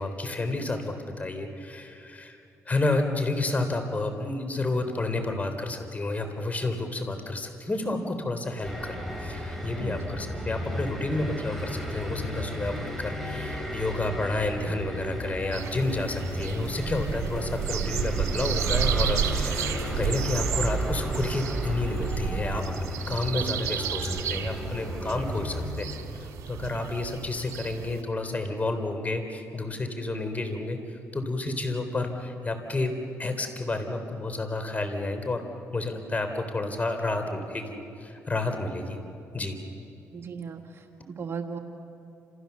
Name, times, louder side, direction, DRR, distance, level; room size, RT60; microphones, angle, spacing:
voice 1, 0.0-2.4 2.7-25.9 26.2-35.5 35.7-39.0 39.3-39.6, left 2 dB, 30° left, 7 dB, 3.6 m, -30 dB
sound 1, 8.6-25.7, equal, 5° left, 7.0 m, -33 dB
sound 2, 15.5-28.0, right 9 dB, 80° right, 2.0 m, -32 dB
voice 2, 40.1-41.6, right 6 dB, 50° right, 3 dB, 1.9 m, -37 dB
29.0 x 28.0 x 7.0 m, 2.7 s
cardioid pair, 80°, 6 cm